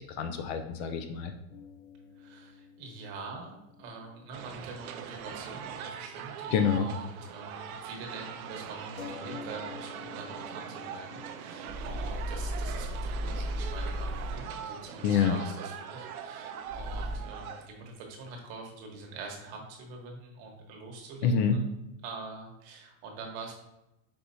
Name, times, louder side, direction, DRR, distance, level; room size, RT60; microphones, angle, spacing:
voice 1, 0.0-1.3 6.5-6.9 15.0-15.4 21.2-21.6, left 6 dB, 50° left, 7 dB, 0.5 m, -27 dB
sound 1, 1.5-5.4 5.6-5.8 9.0-14.2, left 5 dB, 75° left, 1.0 m, -50 dB
voice 2, 2.1-21.7 22.0-23.5, right 3 dB, 50° right, 1 dB, 1.2 m, -45 dB
sound 2, 4.3-17.7, right 8 dB, 85° right, 0.6 m, -42 dB
sound 3, 11.6-14.7 16.7-17.5, equal, ahead, 0.6 m, -35 dB
5.3 x 2.9 x 2.6 m, 0.89 s
supercardioid pair, 135°, 42 cm